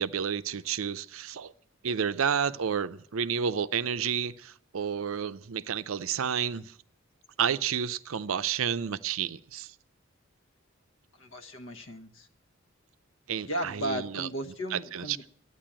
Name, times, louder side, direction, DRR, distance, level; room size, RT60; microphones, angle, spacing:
voice 1, 0.0-1.5 1.8-6.7 7.4-9.7 13.3-14.3 14.7-15.2, right 7 dB, 80° right, 0.5 m, -30 dB
voice 2, 11.2-12.3 13.4-15.3, equal, 65° left, 1.2 m, -35 dB
12.0 x 9.6 x 8.7 m
head